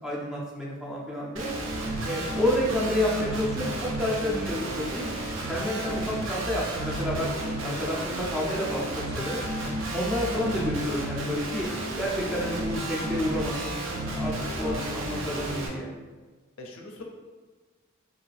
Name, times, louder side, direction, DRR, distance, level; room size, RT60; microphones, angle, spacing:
voice 1, 0.0-1.5 2.0-5.1 5.5-7.3 7.6-9.4 9.9-11.7 12.0-13.8 14.1-15.9, left 1 dB, ahead, -5 dB, 0.4 m, -30 dB
Guitar, 1.3-15.7, right 1 dB, 65° right, 0.5 m, -32 dB
voice 2, 14.6-15.1 16.6-17.0, left 3 dB, 75° left, 1 dB, 0.5 m, -43 dB
2.6 x 2.4 x 3.2 m, 1.3 s
head